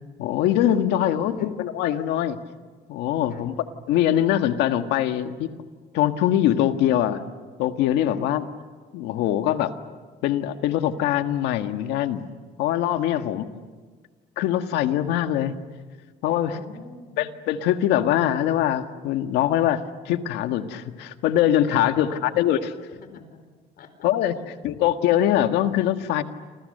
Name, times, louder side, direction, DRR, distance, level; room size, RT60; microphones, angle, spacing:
voice 1, 0.2-2.4 2.9-3.5 3.9-5.5 5.9-7.2 7.6-8.4 8.9-9.7 10.2-12.2 12.6-13.4 14.4-15.5 16.2-16.6 17.2-22.7 24.0-24.3 24.6-26.2, left 11 dB, 90° left, 8 dB, 1.7 m, -23 dB
voice 2, 1.0-1.5 3.3-3.4 8.1-8.2 13.1-13.4 16.4-17.2 21.9-22.2 22.9-23.4 23.8-24.1 24.3-24.8, left 5 dB, 60° left, 9 dB, 4.6 m, -46 dB
29.0 x 26.5 x 6.7 m, 1.5 s
cardioid pair, 110°, 17 cm